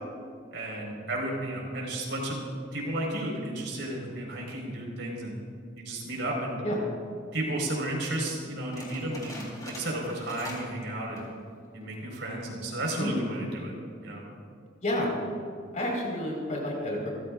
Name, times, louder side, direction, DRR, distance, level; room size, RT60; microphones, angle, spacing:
voice 1, 0.5-2.4 2.7-5.3 5.8-6.6 7.3-9.3 9.6-11.2 11.7-13.7 14.0-14.2, right 1 dB, 65° right, -1 dB, 4.7 m, -33 dB
sound 1, 8.7-10.8 11.0-11.4 11.9-12.0 12.7-13.1, left 1 dB, 20° left, 3.6 m, -43 dB
voice 2, 15.7-17.1, left 1 dB, 40° left, -2 dB, 4.6 m, -30 dB
27.5 x 15.0 x 2.5 m, 2.3 s
head